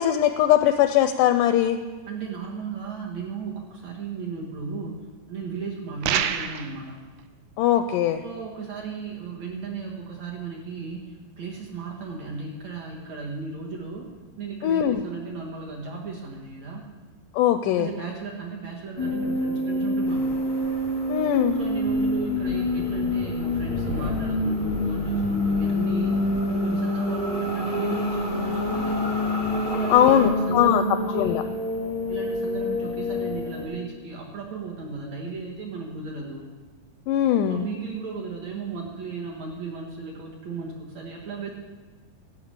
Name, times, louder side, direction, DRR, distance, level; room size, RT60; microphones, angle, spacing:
voice 1, 0.0-1.8 7.6-8.2 14.6-15.0 17.4-17.9 21.1-21.6 29.9-30.8 31.1-31.4 37.1-37.6, left 11 dB, 80° left, 9 dB, 1.9 m, -20 dB
voice 2, 2.1-5.0 5.3-7.0 8.2-11.0 11.4-14.1 14.4-16.8 17.8-20.3 21.5-26.2 26.5-29.0 29.6-31.5 32.1-36.5 37.5-41.5, right 5 dB, 60° right, -1 dB, 2.4 m, -35 dB
sound 1, 6.0-6.8, right 9 dB, 90° right, 2.5 m, -26 dB
sound 2, 19.0-33.6, left 1 dB, 25° right, 1.0 m, -26 dB
sound 3, 20.1-30.3, left 1 dB, 60° left, 0.8 m, -38 dB
13.0 x 5.9 x 8.7 m, 1.4 s
omnidirectional pair, 4.1 m